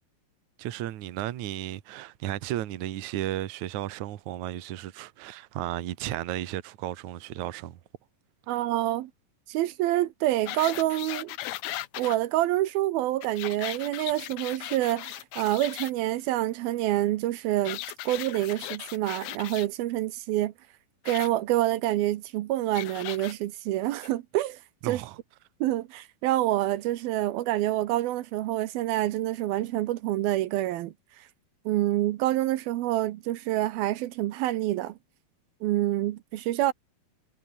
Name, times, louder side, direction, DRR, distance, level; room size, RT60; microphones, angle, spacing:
voice 1, 0.6-7.8 24.8-25.2, right 13 dB, 60° right, 2.4 m, -34 dB
voice 2, 8.5-9.1 9.5-11.4 12.0-17.8 18.1-20.5 21.1-25.0 25.6-31.2 31.7-35.0 35.6-36.7, right 15 dB, 80° right, 2.8 m, -27 dB
sound 1, 10.5-12.2 13.2-15.9 17.6-19.7 21.0-21.3 22.7-23.3 24.0-24.1, left 16 dB, 80° left, 2.8 m, -37 dB
omnidirectional pair, 4.3 m